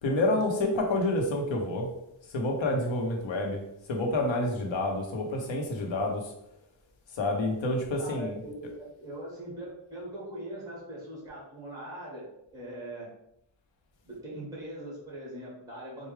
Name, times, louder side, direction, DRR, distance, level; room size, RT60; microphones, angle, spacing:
voice 1, 0.0-1.9 2.3-3.6 3.9-6.2 7.2-8.4, left 1 dB, 75° left, 2 dB, 0.9 m, -28 dB
voice 2, 7.9-12.3 12.5-13.1 14.0-16.1, right 1 dB, 10° right, -5 dB, 1.4 m, -41 dB
4.5 x 2.2 x 3.2 m, 0.81 s
wide cardioid pair, 125°, 46 cm